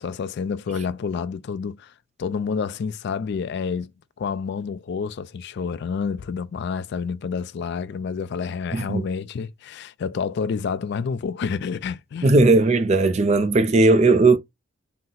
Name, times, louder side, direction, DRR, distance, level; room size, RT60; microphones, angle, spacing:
voice 1, 0.0-1.9 2.2-3.9 4.2-12.4, left 5 dB, 55° left, 0.3 m, -29 dB
voice 2, 8.7-9.0 12.2-14.4, right 3 dB, 30° right, 0.4 m, -17 dB
4.1 x 2.0 x 3.8 m
head